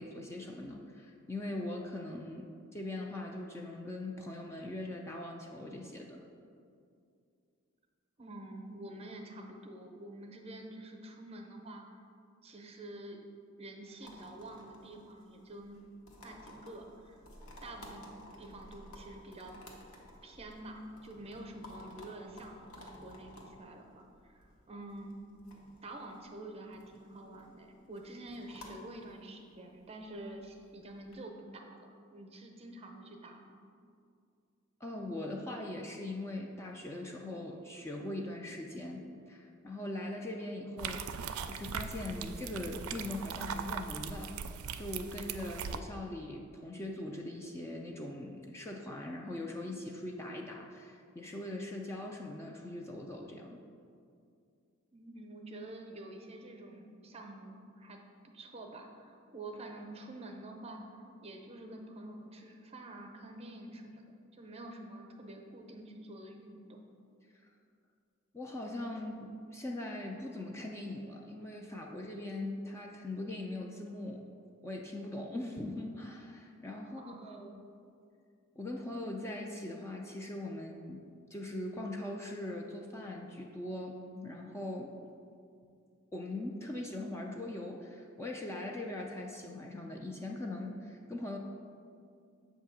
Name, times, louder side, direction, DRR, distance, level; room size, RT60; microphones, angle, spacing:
voice 1, 0.0-2.5 2.7-6.2 34.8-41.1 41.4-44.3 44.8-53.6 68.3-74.2 74.6-77.6 78.6-81.0 81.3-84.9 86.1-91.4, left 1 dB, 15° left, 0 dB, 0.3 m, -41 dB
voice 2, 8.2-12.0 12.4-13.3 13.6-15.8 16.2-17.2 17.6-18.1 18.4-19.5 20.2-25.2 25.8-33.6 54.9-64.1 64.3-66.8 76.8-77.4, right 1 dB, 30° right, 2 dB, 0.6 m, -48 dB
sound 1, 14.0-31.2, left 1 dB, 75° left, 1.0 m, -54 dB
sound 2, 40.8-45.8, right 6 dB, 85° right, 0.4 m, -40 dB
7.3 x 2.7 x 5.8 m, 2.4 s
head